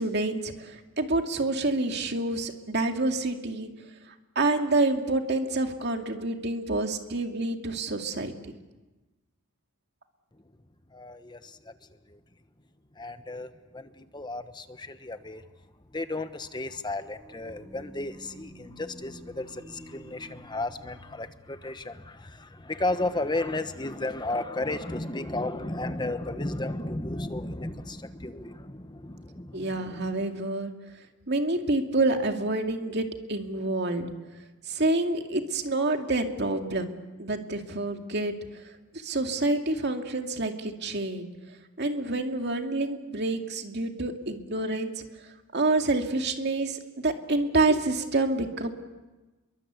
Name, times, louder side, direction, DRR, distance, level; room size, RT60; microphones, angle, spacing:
voice 1, 0.0-3.7 4.4-8.3 29.5-30.7 31.3-34.1 34.7-36.9 37.2-38.6 38.9-41.3 41.8-45.0 45.5-48.7, right 2 dB, 50° right, 4 dB, 2.4 m, -28 dB
voice 2, 10.9-11.7 12.1-12.2 13.0-15.4 15.9-30.2, left 2 dB, 20° left, 10 dB, 1.1 m, -34 dB
sound 1, 16.8-21.6, equal, 15° right, 3.0 m, -49 dB
29.0 x 23.5 x 8.2 m, 1.2 s
head